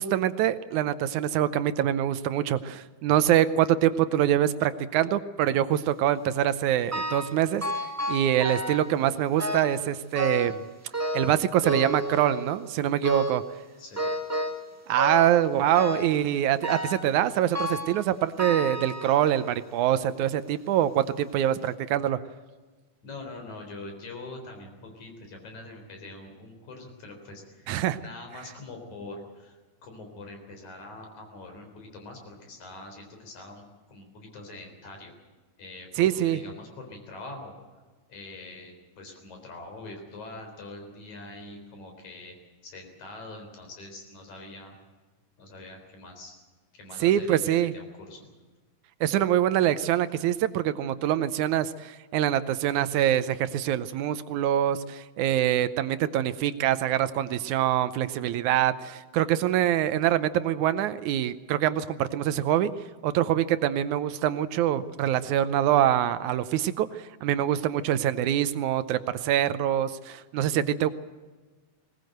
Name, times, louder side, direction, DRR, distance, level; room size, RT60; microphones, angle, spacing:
voice 1, 0.0-7.6 8.1-10.6 11.1-13.4 14.9-22.2 27.7-28.0 36.0-36.4 47.0-47.7 49.0-62.7 63.0-70.9, right 11 dB, 75° right, 13 dB, 2.1 m, -25 dB
sound 1, 6.9-7.4 7.6-8.9 9.4-9.8 10.2-10.6 10.9-12.6 13.0-13.5 14.0-14.7 15.0-15.4 15.7-16.2 16.6-17.1 17.5-18.0 18.4-19.5 20.1-20.2 21.0-21.1 21.6-21.7, equal, 15° right, 0.6 m, -31 dB
voice 2, 13.8-14.2 23.0-35.1 35.6-37.5 38.1-42.3 42.6-44.8 45.4-46.3 46.7-48.3, left 2 dB, 65° left, 3 dB, 5.3 m, -44 dB
20.5 x 19.0 x 7.9 m, 1.3 s
omnidirectional pair, 3.6 m